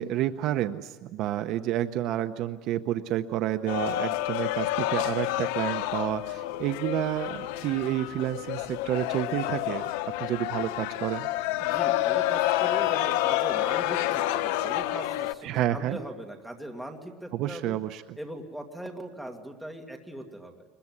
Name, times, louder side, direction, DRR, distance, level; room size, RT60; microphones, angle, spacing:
voice 1, 0.0-9.9 10.2-11.3 15.4-16.0 17.3-18.2, right 12 dB, 45° right, 10 dB, 0.7 m, -30 dB
sound 1, 3.7-15.3, left 14 dB, 85° left, 1.0 m, -29 dB
voice 2, 11.6-17.8 18.2-20.6, right 1 dB, ahead, 2 dB, 2.3 m, -40 dB
22.0 x 21.5 x 9.6 m, 1.3 s
cardioid pair, 170°, 0 cm